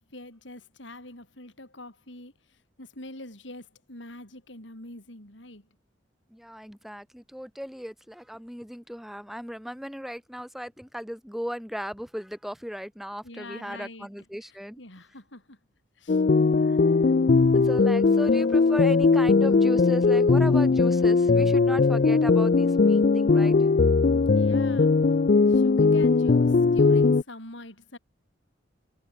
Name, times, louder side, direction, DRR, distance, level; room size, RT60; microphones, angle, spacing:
voice 1, 0.0-5.7 13.2-14.1 14.4-15.6 16.0-16.2 24.3-25.0 25.5-28.0, left 1 dB, 70° left, 6.5 m, -44 dB
voice 2, 6.3-14.8 16.6-16.8 17.5-23.6, equal, ahead, 2.0 m, -36 dB
sound 1, 16.1-27.2, left 4 dB, 45° left, 0.4 m, -20 dB
head